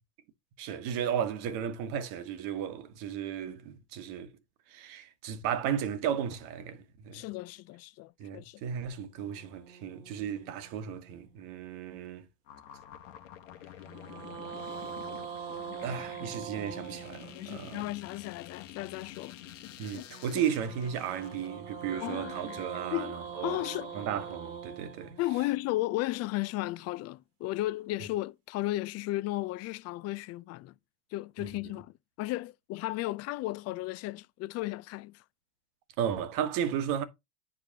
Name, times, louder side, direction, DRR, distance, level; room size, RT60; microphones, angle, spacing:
voice 1, 0.6-4.3 4.7-7.3 8.2-12.3 15.8-17.8 19.8-23.6 23.9-25.1 31.4-31.5 36.0-37.0, right 8 dB, 60° right, 1.3 m, -34 dB
voice 2, 7.1-8.6 17.3-20.1 22.0-22.6 22.9-23.9 25.2-30.7 31.1-35.2, left 17 dB, 45° left, 0.5 m, -35 dB
sound 1, 9.2-11.6 13.8-18.0 20.1-26.3, right 6 dB, 85° right, 2.2 m, -43 dB
sound 2, 12.5-24.4, left 12 dB, 85° left, 1.2 m, -49 dB
9.4 x 5.4 x 2.8 m
supercardioid pair, 105°, 37 cm